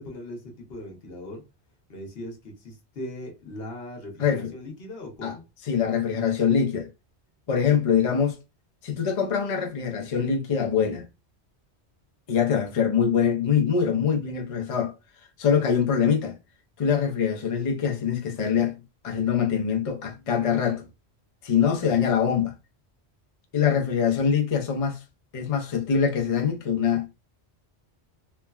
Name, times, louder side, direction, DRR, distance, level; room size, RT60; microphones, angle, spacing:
voice 1, 0.0-1.5 1.9-5.5, left 1 dB, 60° left, 1.0 m, -39 dB
voice 2, 4.2-4.5 5.2-5.4 5.6-6.9 7.5-8.4 8.8-11.1 12.3-14.9 15.4-16.4 16.8-18.8 19.0-20.9 21.4-22.5 23.5-25.0 25.3-27.1, left 7 dB, 45° left, 0.4 m, -24 dB
3.2 x 2.1 x 2.3 m
omnidirectional pair, 1.1 m